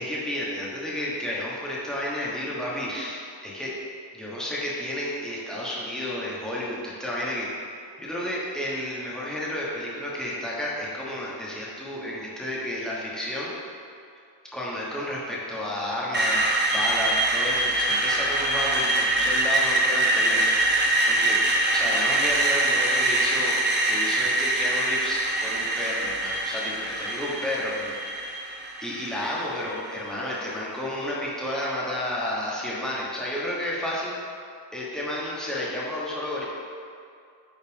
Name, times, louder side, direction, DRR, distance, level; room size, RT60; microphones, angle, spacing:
voice 1, 0.0-3.7 4.1-7.7 8.0-13.5 14.5-16.4 16.7-20.5 20.7-21.4 21.7-23.6 23.9-28.5 28.8-34.2 34.7-36.4, left 1 dB, ahead, -7 dB, 1.2 m, -31 dB
Screech, 16.1-30.1, right 2 dB, 25° right, 0.7 m, -24 dB
9.7 x 4.1 x 3.5 m, 2.3 s
wide cardioid pair, 175°, 44 cm